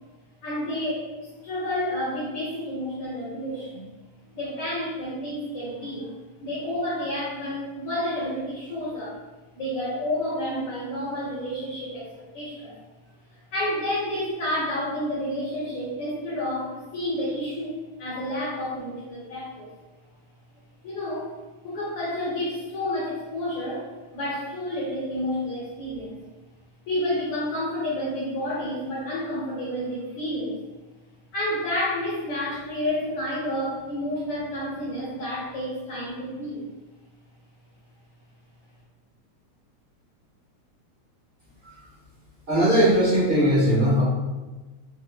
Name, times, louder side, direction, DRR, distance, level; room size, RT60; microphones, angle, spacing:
voice 1, 0.4-3.8 4.3-6.1 6.4-9.2 9.5-12.8 13.5-19.7 20.8-21.3 21.6-23.9 24.1-26.2 26.9-30.6 31.3-36.7, left 1 dB, 65° left, -8 dB, 1.5 m, -30 dB
voice 2, 42.5-44.0, equal, 40° right, -12 dB, 0.8 m, -19 dB
4.5 x 3.1 x 2.2 m, 1.2 s
omnidirectional pair, 3.3 m